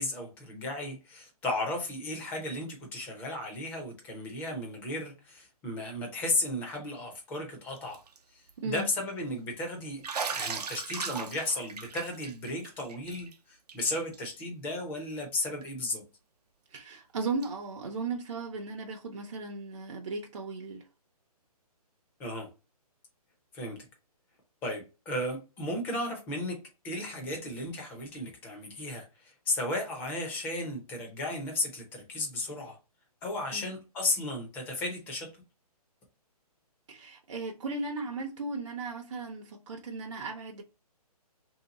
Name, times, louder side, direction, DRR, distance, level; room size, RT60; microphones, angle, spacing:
voice 1, 0.0-8.0 8.3-16.0 22.2-22.5 23.5-23.8 24.6-26.6 26.8-32.8 33.2-35.3, left 2 dB, 10° left, 0.6 m, -34 dB
Bathtub (filling or washing), 7.8-8.2 8.5-8.6 10.0-13.3 13.7-13.8 14.1-14.2 15.6-15.7 17.4-17.5, right 5 dB, 85° right, 0.7 m, -37 dB
voice 2, 16.7-20.8 33.5-33.6 36.9-40.6, right 3 dB, 50° right, 0.7 m, -36 dB
3.2 x 2.8 x 4.0 m
hypercardioid pair, 165°, 20 cm